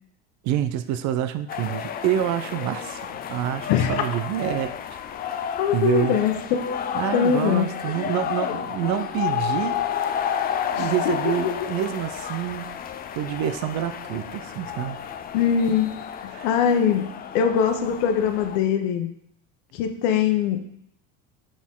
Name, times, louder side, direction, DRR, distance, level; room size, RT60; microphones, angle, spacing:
voice 1, 0.4-4.7 5.7-6.2 6.9-9.8 10.8-12.8 13.1-15.0 16.3-16.5, right 11 dB, 50° right, 10 dB, 0.6 m, -27 dB
sound 1, 1.5-18.6, left 8 dB, 25° left, 0.4 m, -31 dB
voice 2, 5.6-6.3 7.1-7.6 10.7-11.5 15.3-15.9 16.2-19.1 19.7-20.6, left 8 dB, 70° left, 6 dB, 1.2 m, -22 dB
6.5 x 6.3 x 3.7 m, 0.70 s
cardioid pair, 145°, 37 cm